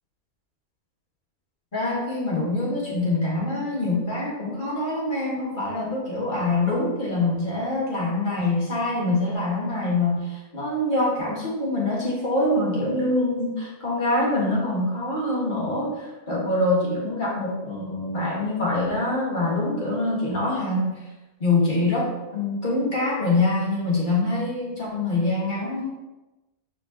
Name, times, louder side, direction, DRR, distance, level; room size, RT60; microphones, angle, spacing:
voice 1, 1.7-20.9 21.4-25.9, left 2 dB, 35° left, -6 dB, 2.1 m, -25 dB
7.0 x 5.1 x 3.1 m, 1.0 s
omnidirectional pair, 1.5 m